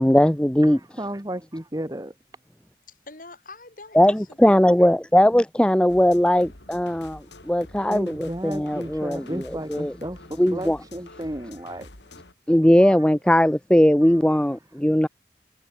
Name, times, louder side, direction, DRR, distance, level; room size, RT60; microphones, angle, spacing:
voice 1, 0.0-0.8 3.9-9.4 9.7-9.9 10.4-10.8 12.5-15.1, equal, 5° left, 0.5 m, -19 dB
voice 2, 1.0-2.1 7.9-11.9 12.8-13.0 14.0-14.1, right 1 dB, 20° right, 1.8 m, -33 dB
voice 3, 2.9-4.9, left 3 dB, 50° left, 4.5 m, -45 dB
sound 1, 5.9-12.3, left 2 dB, 80° left, 5.1 m, -46 dB
head